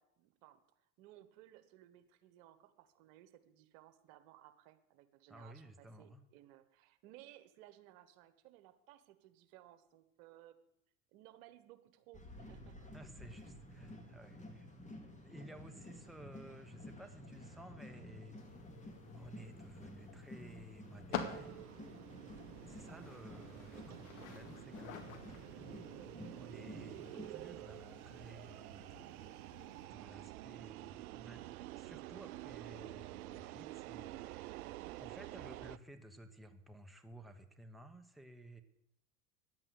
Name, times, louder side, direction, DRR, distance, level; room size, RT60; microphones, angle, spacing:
voice 1, 0.0-10.6 11.1-12.9 22.9-23.0 34.8-35.0, right 14 dB, 60° right, 11 dB, 1.4 m, -60 dB
voice 2, 5.3-6.2 12.9-14.7 15.2-18.6 19.1-21.6 22.7-27.0 27.3-29.4 29.9-34.6 35.0-38.6, right 1 dB, ahead, 5 dB, 1.1 m, -55 dB
sound 1, 12.1-27.3, left 1 dB, 15° left, 2.5 m, -52 dB
sound 2, 18.4-29.9, left 7 dB, 65° left, 2.1 m, -50 dB
sound 3, 21.1-35.8, right 17 dB, 75° right, 0.5 m, -49 dB
10.5 x 8.9 x 8.3 m, 0.81 s
hypercardioid pair, 90°, 44 cm